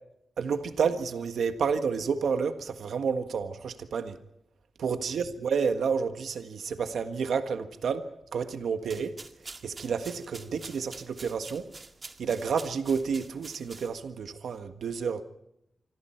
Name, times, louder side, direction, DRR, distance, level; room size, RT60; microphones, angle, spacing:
voice 1, 0.4-4.2 4.8-9.2 9.6-11.7 12.2-15.2, right 6 dB, 80° right, 1.6 m, -30 dB
sound 1, 8.8-14.2, right 3 dB, 35° right, 2.1 m, -47 dB
26.5 x 26.0 x 4.6 m
wide cardioid pair, 110°, 0 cm